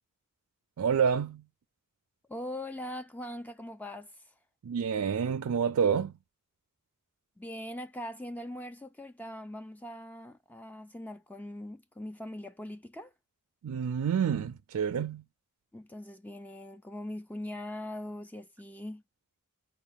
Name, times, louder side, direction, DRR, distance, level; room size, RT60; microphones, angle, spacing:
voice 1, 0.8-1.4 4.6-6.1 13.6-15.2, right 7 dB, 70° right, 0.4 m, -28 dB
voice 2, 2.3-4.3 7.4-13.1 15.7-19.0, left 1 dB, 5° left, 0.3 m, -41 dB
4.5 x 2.4 x 3.5 m
head